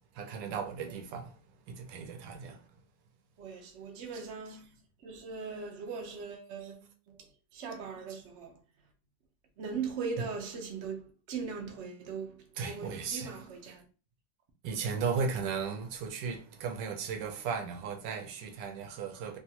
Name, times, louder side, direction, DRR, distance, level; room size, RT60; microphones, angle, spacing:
voice 1, 0.1-1.4 1.7-2.7 4.1-4.6 6.6-6.7 10.2-10.3 12.6-13.4 13.7-13.8 14.6-19.4, right 5 dB, 85° right, 1.3 m, -36 dB
voice 2, 3.4-8.6 9.6-13.8, right 5 dB, 55° right, 0.8 m, -40 dB
3.5 x 2.4 x 2.8 m
omnidirectional pair, 1.9 m